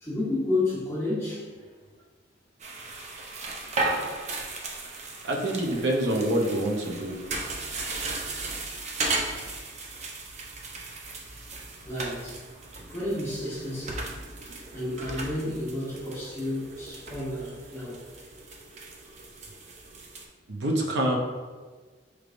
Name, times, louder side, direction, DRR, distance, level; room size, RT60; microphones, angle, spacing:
voice 1, 0.0-1.5 11.8-12.4 12.9-14.1 14.7-18.0, left 2 dB, 15° left, -9 dB, 1.1 m, -31 dB
sound 1, 2.6-20.2, right 2 dB, 40° right, 0.5 m, -36 dB
voice 2, 5.2-7.2 20.5-21.2, right 1 dB, 80° right, 0 dB, 0.7 m, -26 dB
4.6 x 3.2 x 2.5 m, 1.4 s
head